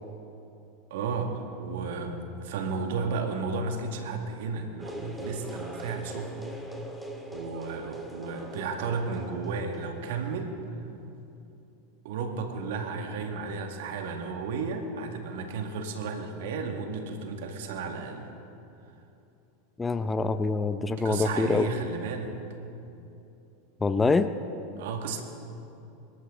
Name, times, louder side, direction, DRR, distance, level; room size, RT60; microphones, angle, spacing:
voice 1, 0.9-6.5 7.3-10.6 12.0-18.3 20.9-22.3 24.8-25.2, right 4 dB, 65° right, 3 dB, 2.2 m, -33 dB
sound 1, 4.8-10.0, right 1 dB, ahead, 2.4 m, -41 dB
voice 2, 19.8-21.7 23.8-24.3, left 3 dB, 15° left, 11 dB, 0.7 m, -25 dB
26.5 x 13.0 x 4.0 m, 2.8 s
hypercardioid pair, 90°, 0 cm